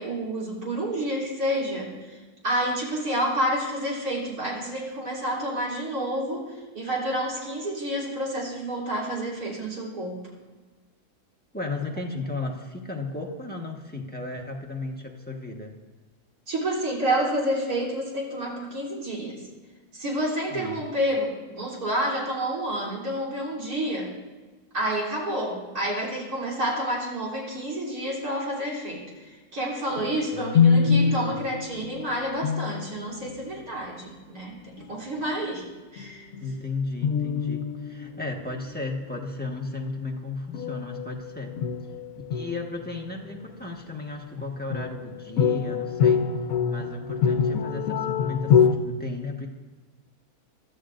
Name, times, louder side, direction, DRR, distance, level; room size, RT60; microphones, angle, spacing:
voice 1, 0.0-2.2 2.4-10.2 16.5-19.4 19.9-24.1 24.7-35.6 35.9-36.3, right 1 dB, 70° right, -4 dB, 3.9 m, -29 dB
voice 2, 11.5-15.7 20.5-20.8 30.3-31.4 36.4-41.6 42.3-46.3 46.6-49.5, left 3 dB, 5° left, 0 dB, 1.2 m, -34 dB
sound 1, 29.9-33.0 34.8-34.9 35.2-35.4 36.0-36.5 37.0-38.6 40.5-43.5 44.4-48.7, left 6 dB, 70° left, 1.2 m, -25 dB
22.5 x 13.0 x 2.6 m, 1.3 s
omnidirectional pair, 1.6 m